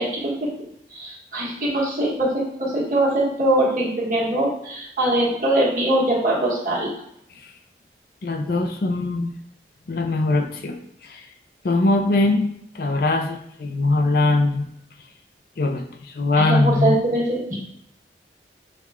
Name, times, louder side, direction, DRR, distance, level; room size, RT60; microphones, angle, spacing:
voice 1, 0.0-6.9 16.3-17.6, right 1 dB, 45° right, -5 dB, 1.4 m, -22 dB
voice 2, 8.2-9.3 9.9-11.3 11.6-12.5 12.7-14.7 15.6-17.0, left 2 dB, 55° left, 5 dB, 0.4 m, -21 dB
6.2 x 2.3 x 3.4 m, 0.72 s
head